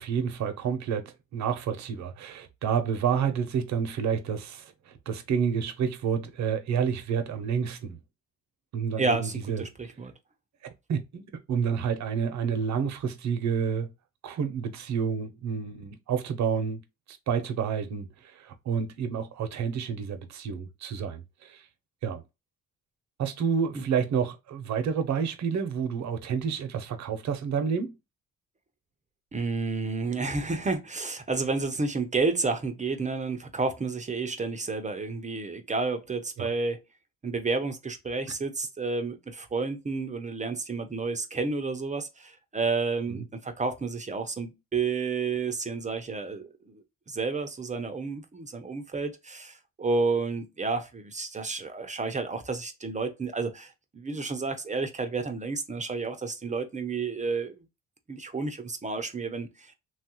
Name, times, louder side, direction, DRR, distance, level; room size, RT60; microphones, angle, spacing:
voice 1, 0.0-8.0 8.7-9.6 10.9-13.9 14.2-16.8 17.1-21.7 22.0-22.2 23.2-28.0 36.4-36.5 43.1-43.2, right 7 dB, 65° right, 0.8 m, -29 dB
voice 2, 9.0-10.1 23.7-23.8 29.3-36.8 37.2-46.7 47.1-57.6 58.1-59.7, right 4 dB, 25° right, 0.6 m, -31 dB
3.1 x 2.4 x 2.9 m
cardioid pair, 90°, 30 cm